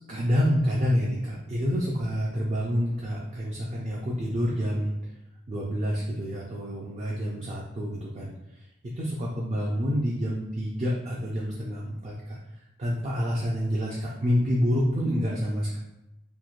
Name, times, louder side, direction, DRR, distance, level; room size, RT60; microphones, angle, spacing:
voice 1, 0.1-4.9 5.5-8.6 9.0-12.4 12.8-15.8, equal, 35° right, -4 dB, 0.3 m, -28 dB
3.0 x 2.1 x 2.4 m, 0.88 s
head